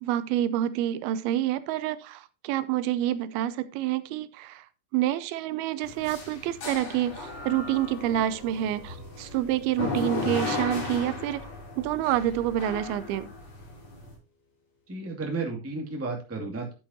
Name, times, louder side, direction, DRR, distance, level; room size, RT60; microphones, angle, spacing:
voice 1, 0.0-4.7 4.9-11.5 11.8-13.3, right 12 dB, 85° right, 2.6 m, -28 dB
sound 1, 5.8-14.1, left 3 dB, 45° left, 4.4 m, -36 dB
sound 2, 7.0-13.4, left 2 dB, 60° left, 4.4 m, -49 dB
voice 2, 14.9-16.7, right 3 dB, 5° right, 1.1 m, -33 dB
10.0 x 8.8 x 2.8 m
omnidirectional pair, 4.3 m